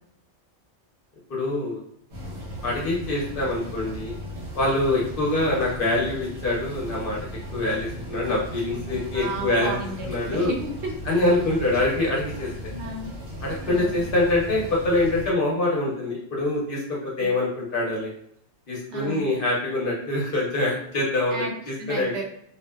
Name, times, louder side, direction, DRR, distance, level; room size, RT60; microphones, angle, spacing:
voice 1, 1.3-1.8 2.6-4.1 4.5-7.2 7.5-9.7 10.0-10.5 11.0-12.5 13.4-18.1 18.7-22.2, left 2 dB, 55° left, -4 dB, 0.8 m, -25 dB
sound 1, 2.1-15.3, equal, 90° right, 1.2 m, -36 dB
voice 2, 9.1-10.9 12.7-13.1 13.7-14.0 17.0-17.3 18.9-19.3 21.3-21.5 21.8-22.2, right 3 dB, 70° right, 0 dB, 0.9 m, -33 dB
2.7 x 2.1 x 2.2 m, 0.68 s
omnidirectional pair, 1.2 m